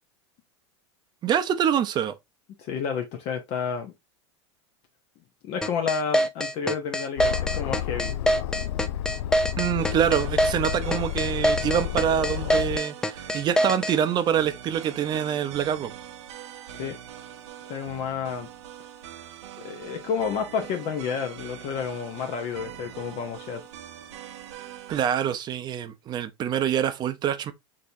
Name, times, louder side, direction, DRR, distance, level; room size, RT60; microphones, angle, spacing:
voice 1, 1.2-2.1 9.6-15.9 24.9-27.5, right 9 dB, 30° right, 0.6 m, -25 dB
voice 2, 2.6-3.9 5.4-8.2 16.7-17.0 17.7-18.5 19.6-23.7, left 6 dB, 45° left, 0.8 m, -30 dB
sound 1, 5.6-14.0, equal, 5° left, 0.3 m, -24 dB
Aircraft, 7.2-12.8, left 12 dB, 75° left, 0.4 m, -31 dB
sound 2, 9.8-25.0, right 10 dB, 80° right, 0.8 m, -43 dB
6.2 x 2.8 x 2.6 m
supercardioid pair, 130°, 15 cm